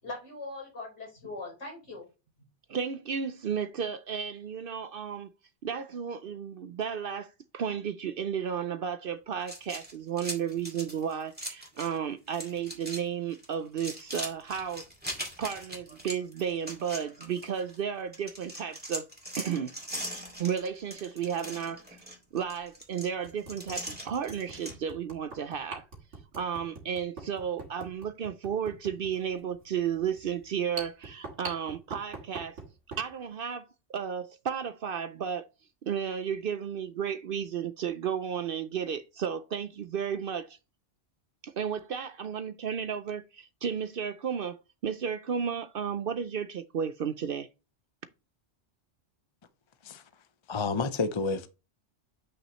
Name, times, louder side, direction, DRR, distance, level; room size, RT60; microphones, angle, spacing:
voice 1, 0.0-2.1, left 2 dB, 75° left, 4.9 m, -40 dB
voice 2, 2.7-5.3 5.6-14.8 15.4-19.1 19.4-19.7 20.4-22.0 22.3-25.8 26.4-32.6 33.0-35.5 35.8-40.6 41.4-47.5, right 7 dB, 60° right, 0.7 m, -33 dB
sound 1, 9.4-12.0 12.3-13.0 13.3-17.8 18.1-24.8, right 1 dB, 10° right, 2.2 m, -40 dB
sound 2, 20.2-20.5 21.9-22.0 22.6-22.7 23.2-33.1, right 4 dB, 75° right, 2.3 m, -45 dB
voice 3, 50.5-51.5, left 4 dB, 30° left, 0.6 m, -29 dB
8.3 x 6.0 x 3.1 m
omnidirectional pair, 1.2 m